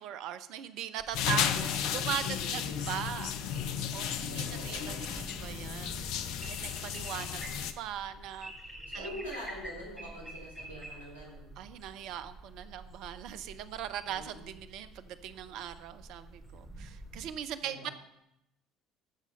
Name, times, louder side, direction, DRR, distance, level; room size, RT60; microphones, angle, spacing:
voice 1, 0.0-6.0 6.4-8.5 8.9-9.1 11.6-17.9, right 10 dB, 55° right, 12 dB, 0.6 m, -40 dB
sound 1, 1.0-17.3, right 1 dB, 5° right, 4.2 m, -48 dB
sound 2, 1.1-7.7, left 9 dB, 60° left, 0.7 m, -34 dB
voice 2, 2.2-3.0 4.3-5.2 8.9-11.5 14.0-14.5 17.6-17.9, equal, 75° left, -3 dB, 4.5 m, -45 dB
14.0 x 6.2 x 5.5 m, 0.84 s
figure-of-eight pair, 55°, 0 cm